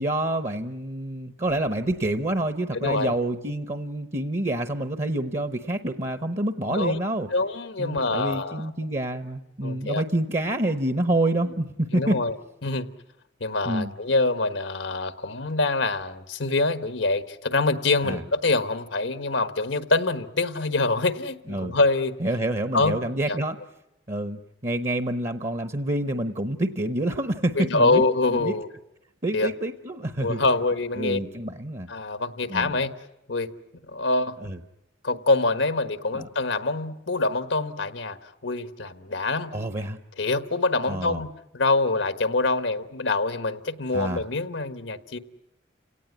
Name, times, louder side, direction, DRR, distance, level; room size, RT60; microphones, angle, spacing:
voice 1, 0.0-7.3 7.8-12.2 13.7-13.9 18.0-18.2 21.5-21.8 22.2-23.6 24.1-28.0 28.3-28.5 29.2-30.4 31.0-31.9 32.5-32.8 34.4-34.6 36.1-36.3 39.5-40.0 40.8-41.2 43.9-44.2, right 1 dB, 35° right, 9 dB, 0.9 m, -27 dB
voice 2, 2.7-3.1 6.7-7.0 7.3-8.7 9.6-10.0 11.9-12.3 12.6-12.9 13.4-22.2 22.7-23.0 23.3-23.4 27.6-28.7 29.3-29.5 30.2-31.2 31.9-32.9 33.3-33.5 33.8-34.4 35.0-38.2 38.4-39.5 40.2-45.2, left 3 dB, 90° left, 10 dB, 1.4 m, -25 dB
30.0 x 18.0 x 9.5 m, 0.91 s
head